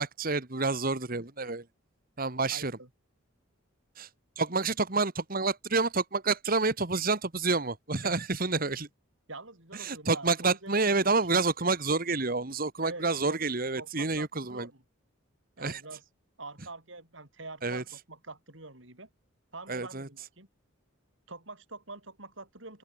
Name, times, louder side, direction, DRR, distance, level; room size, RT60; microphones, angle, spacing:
voice 1, 0.0-1.6 2.2-2.7 4.0-4.1 4.4-8.9 9.8-14.7 15.6-15.8 17.6-17.8 19.7-20.1, right 3 dB, 45° right, 1.7 m, -28 dB
voice 2, 2.2-2.9 8.0-8.2 8.5-8.6 9.3-11.2 12.8-13.4 13.8-14.8 15.6-16.0 16.4-19.1 19.5-20.5 21.3-22.8, right 2 dB, 65° right, 7.8 m, -45 dB
open air
head